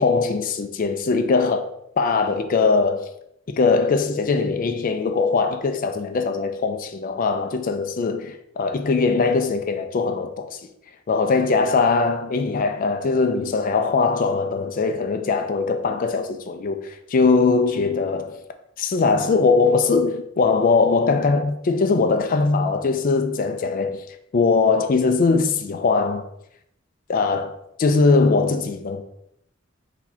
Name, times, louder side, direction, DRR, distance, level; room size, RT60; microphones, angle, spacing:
voice 1, 0.0-1.7 2.0-3.1 3.5-8.3 8.6-10.6 11.1-18.4 18.8-24.1 24.3-26.2 27.1-27.5 27.8-29.0, left 4 dB, 45° left, 0.4 m, -21 dB
4.2 x 2.7 x 4.3 m
head